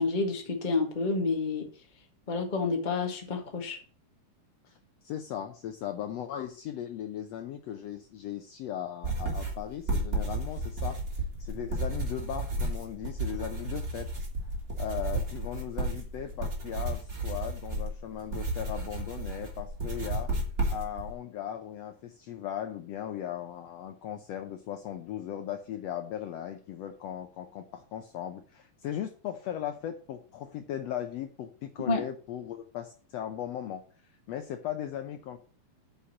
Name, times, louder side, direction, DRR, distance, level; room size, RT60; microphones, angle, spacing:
voice 1, 0.0-1.7 2.3-3.8 31.9-32.0, left 4 dB, 20° left, 3 dB, 1.4 m, -29 dB
voice 2, 5.0-14.1 14.8-20.3 20.7-35.4, left 10 dB, 70° left, 7 dB, 1.7 m, -38 dB
sound 1, 9.0-21.1, right 2 dB, 30° right, 2.7 m, -33 dB
8.6 x 5.7 x 7.2 m, 0.40 s
omnidirectional pair, 3.5 m